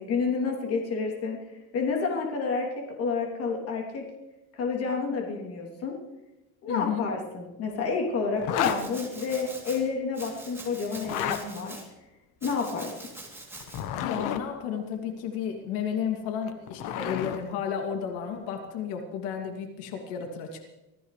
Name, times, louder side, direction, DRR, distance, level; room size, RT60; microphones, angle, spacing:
voice 1, 0.0-4.0 4.5-6.0 6.6-11.8 12.4-12.9, left 4 dB, 40° left, 0 dB, 3.2 m, -30 dB
voice 2, 6.7-7.1 14.0-20.6, left 8 dB, 80° left, 3 dB, 2.7 m, -32 dB
Zipper (clothing), 8.4-8.8 10.9-11.4 13.6-14.4 16.3-17.4, left 10 dB, 55° left, 1.3 m, -30 dB
Domestic sounds home sounds, 8.6-9.8 10.1-11.8 12.4-13.8, right 2 dB, 5° right, 3.1 m, -44 dB
25.0 x 16.0 x 3.3 m, 1.0 s
cardioid pair, 170°, 38 cm